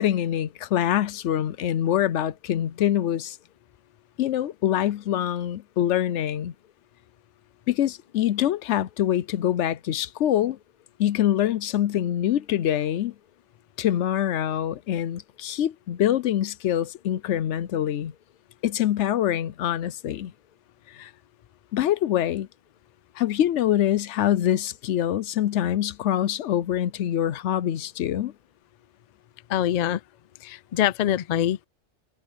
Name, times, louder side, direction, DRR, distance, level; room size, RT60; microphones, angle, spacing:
voice 1, 0.0-3.4 4.2-6.5 7.7-10.6 11.0-13.1 13.8-18.1 18.6-20.3 20.9-21.1 21.7-22.5 23.2-28.3, left 11 dB, 70° left, 0.9 m, -25 dB
voice 2, 29.5-30.0 30.4-31.7, left 11 dB, 85° left, 0.3 m, -24 dB
omnidirectional pair, 1.3 m